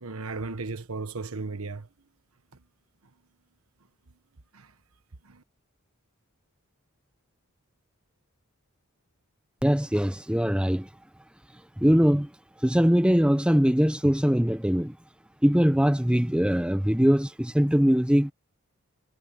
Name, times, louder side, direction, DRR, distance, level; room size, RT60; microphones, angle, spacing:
voice 1, 0.0-1.9 4.5-4.7 5.2-5.4, right 3 dB, 70° right, 1.3 m, -35 dB
voice 2, 9.6-10.9 11.8-12.3 12.6-14.9 15.4-18.3, equal, 5° right, 0.7 m, -22 dB
head